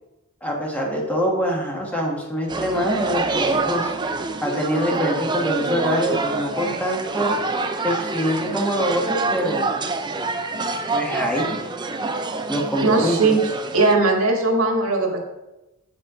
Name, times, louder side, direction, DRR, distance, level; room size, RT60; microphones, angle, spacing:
voice 1, 0.4-3.9 4.4-7.3 7.8-9.7 10.9-11.6 12.5-13.3, equal, 5° left, -1 dB, 1.4 m, -24 dB
sound 1, 2.5-13.9, right 3 dB, 20° right, 0.5 m, -26 dB
voice 2, 12.8-13.4 13.7-15.2, right 3 dB, 80° right, 2 dB, 1.5 m, -19 dB
8.1 x 5.4 x 4.9 m, 0.99 s
head